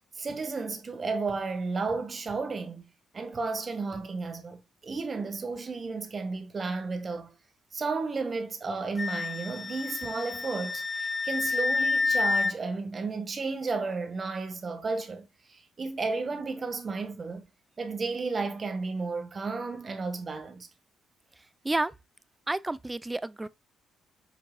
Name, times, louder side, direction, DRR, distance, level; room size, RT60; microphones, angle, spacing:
voice 1, 0.2-2.8 3.1-7.3 7.7-17.4 17.8-20.7, right 4 dB, 35° right, 1.8 m, -33 dB
Wind instrument woodwind instrument, 9.0-12.5, left 3 dB, 25° left, 0.4 m, -29 dB
voice 2, 22.5-23.5, right 2 dB, 15° right, 0.6 m, -30 dB
7.6 x 5.2 x 2.4 m
cardioid pair, 90°, 0 cm